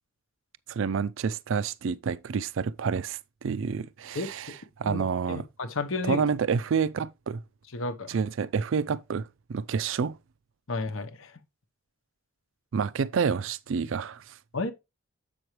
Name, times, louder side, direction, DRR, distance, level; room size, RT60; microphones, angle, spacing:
voice 1, 0.7-5.4 6.0-7.4 8.1-10.2 12.7-14.4, right 6 dB, 70° right, 0.4 m, -29 dB
voice 2, 4.8-6.2 7.7-8.1 10.7-11.3 14.5-14.7, left 3 dB, 75° left, 1.0 m, -32 dB
7.8 x 6.0 x 3.1 m
head